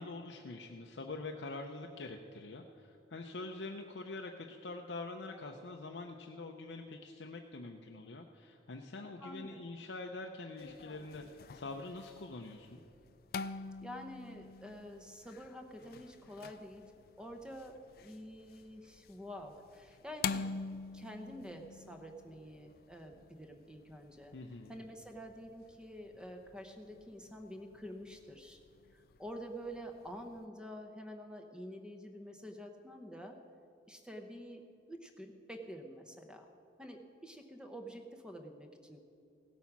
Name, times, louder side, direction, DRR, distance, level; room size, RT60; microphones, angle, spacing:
voice 1, 0.0-12.8 24.3-24.7, left 3 dB, 90° left, 2 dB, 0.7 m, -45 dB
voice 2, 9.2-9.6 13.8-16.8 17.2-20.5 20.9-24.3 24.7-28.6 28.9-33.4 33.9-34.6 34.9-36.5 36.8-39.0, equal, 5° right, 3 dB, 0.8 m, -48 dB
sound 1, 10.6-30.5, left 5 dB, 55° left, 0.3 m, -47 dB
16.5 x 8.4 x 6.0 m, 2.7 s
head